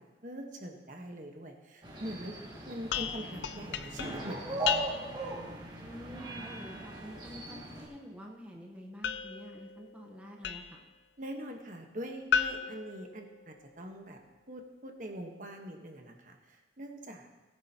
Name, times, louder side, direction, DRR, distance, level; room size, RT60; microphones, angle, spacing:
voice 1, 0.0-2.3 2.7-4.8 11.2-14.2 14.5-17.4, equal, 45° right, 3 dB, 1.2 m, -43 dB
sound 1, 1.8-7.9, right 1 dB, 25° right, 2.1 m, -39 dB
sound 2, 2.9-5.3 9.0-10.9 12.3-13.8, left 7 dB, 90° left, 0.5 m, -35 dB
voice 2, 5.8-10.8, equal, 5° right, -1 dB, 1.0 m, -48 dB
17.5 x 10.5 x 2.9 m, 1.2 s
head